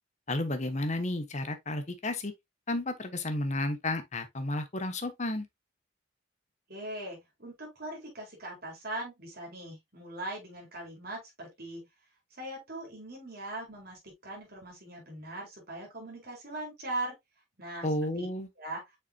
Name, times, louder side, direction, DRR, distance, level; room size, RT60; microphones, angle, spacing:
voice 1, 0.3-2.3 2.7-5.5 17.8-18.5, left 1 dB, 35° left, 1.0 m, -32 dB
voice 2, 6.7-11.9 12.4-17.2 17.6-17.9 18.1-18.3 18.6-18.8, right 2 dB, 50° right, 4.1 m, -40 dB
7.0 x 5.8 x 2.3 m
head